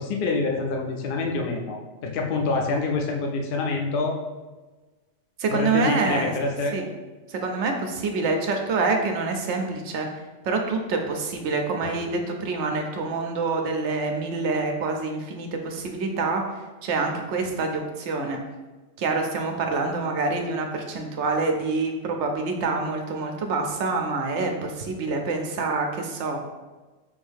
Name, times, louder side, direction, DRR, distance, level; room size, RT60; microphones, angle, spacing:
voice 1, 0.0-4.2 5.5-6.7, left 3 dB, 55° left, 2 dB, 0.7 m, -26 dB
voice 2, 5.4-6.3 6.7-6.9 7.3-10.1 10.4-16.4 16.8-18.4 19.0-26.4, right 3 dB, 70° right, 3 dB, 0.9 m, -26 dB
Guitar, 11.8-14.4, left 2 dB, 75° left, 1.1 m, -45 dB
5.2 x 2.7 x 3.4 m, 1.2 s
omnidirectional pair, 1.2 m